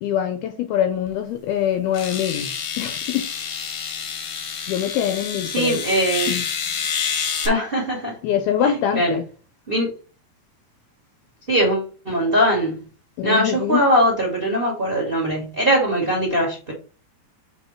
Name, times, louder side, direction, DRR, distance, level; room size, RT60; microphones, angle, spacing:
voice 1, 0.0-3.3 4.7-5.8 6.3-6.4 8.2-9.2 13.2-13.8, left 10 dB, 80° left, 2.4 m, -24 dB
sound 1, 1.1-1.2 1.9-7.5, left 7 dB, 60° left, 1.8 m, -28 dB
voice 2, 5.4-6.3 7.4-8.2 8.6-9.2 9.7-9.9 11.5-12.8 13.2-16.7, equal, 25° right, 1.3 m, -21 dB
6.9 x 4.0 x 4.5 m
omnidirectional pair, 5.0 m